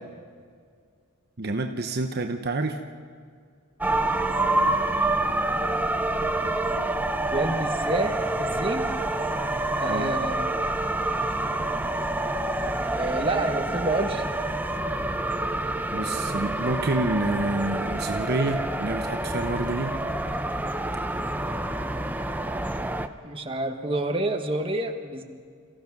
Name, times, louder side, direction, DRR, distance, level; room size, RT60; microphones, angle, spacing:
voice 1, 1.4-2.8 9.9-10.1 15.9-19.9, right 2 dB, 45° right, 5 dB, 0.9 m, -28 dB
sound 1, 3.8-23.1, right 2 dB, 10° right, 0.6 m, -27 dB
voice 2, 7.3-8.9 9.8-10.4 12.9-14.2 23.2-25.2, right 2 dB, 25° right, 4 dB, 1.4 m, -28 dB
27.5 x 16.0 x 6.1 m, 2.1 s
head